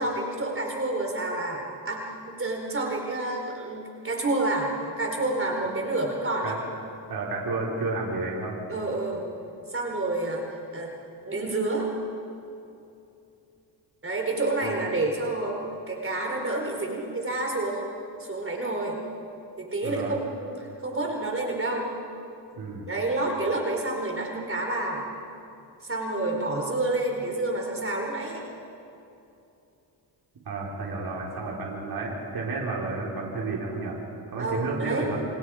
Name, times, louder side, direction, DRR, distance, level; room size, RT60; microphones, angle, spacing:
voice 1, 0.0-6.5 8.7-9.3 9.7-10.4 10.7-10.9 11.3-11.9 14.0-17.9 18.2-19.0 19.6-21.9 22.9-25.0 25.9-28.4 34.4-35.1, right 2 dB, 30° right, 1 dB, 4.3 m, -29 dB
voice 2, 7.1-8.6 14.6-14.9 19.8-20.2 22.6-22.9 30.4-34.0 34.3-35.2, right 3 dB, 60° right, -3 dB, 4.7 m, -31 dB
29.0 x 27.0 x 5.1 m, 2.7 s
cardioid pair, 90°, 41 cm